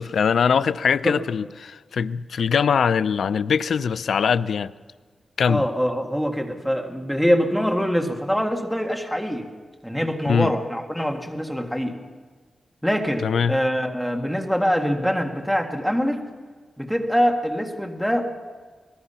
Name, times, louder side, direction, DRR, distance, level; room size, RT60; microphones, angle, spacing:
voice 1, 0.0-4.7 5.4-5.6 10.3-10.5 13.2-13.6, left 6 dB, 80° left, 15 dB, 0.5 m, -22 dB
voice 2, 5.5-9.5 9.8-12.0 12.8-16.2 16.8-18.2, equal, ahead, 3 dB, 1.8 m, -24 dB
24.0 x 19.5 x 5.7 m, 1.5 s
wide cardioid pair, 145°, 0 cm